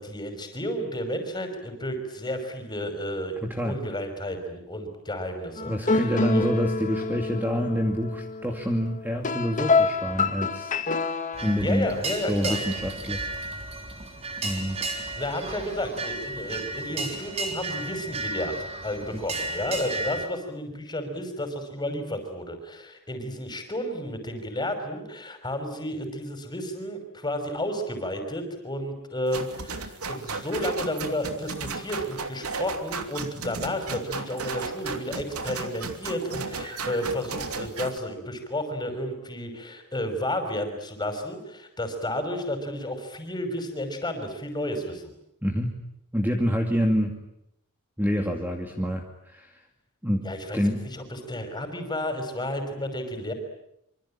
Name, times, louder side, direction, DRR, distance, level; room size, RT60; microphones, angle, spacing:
voice 1, 0.0-6.5 11.6-12.6 15.2-18.5 18.8-45.0 50.2-50.6 50.9-53.3, left 1 dB, 20° left, 7 dB, 5.7 m, -32 dB
voice 2, 3.4-3.8 5.7-10.8 11.4-11.9 12.3-13.3 14.4-14.8 19.1-19.2 45.4-45.8 46.1-47.2 48.0-49.6 50.0-50.3 50.5-50.8, equal, 10° right, 3 dB, 2.5 m, -27 dB
sound 1, 5.6-11.6, left 4 dB, 35° left, 1.9 m, -27 dB
sound 2, 11.3-20.3, right 2 dB, 30° right, 3.6 m, -34 dB
sound 3, 29.3-38.0, right 4 dB, 80° right, 2.8 m, -35 dB
26.0 x 25.5 x 8.8 m, 0.79 s
head